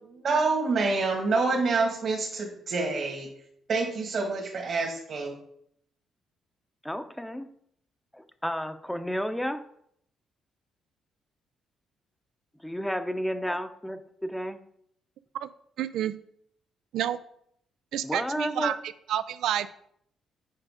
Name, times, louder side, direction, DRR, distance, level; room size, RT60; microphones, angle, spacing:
voice 1, 0.0-3.3 3.7-5.4, right 3 dB, 55° right, -1 dB, 1.8 m, -27 dB
voice 2, 6.8-7.5 8.1-9.6 12.6-14.6 18.0-18.7, equal, 5° left, 9 dB, 0.7 m, -32 dB
voice 3, 15.8-16.1 16.9-17.2 17.9-18.8 19.1-19.7, right 11 dB, 80° right, 14 dB, 0.3 m, -29 dB
7.6 x 5.0 x 4.9 m, 0.69 s
cardioid pair, 90°, 0 cm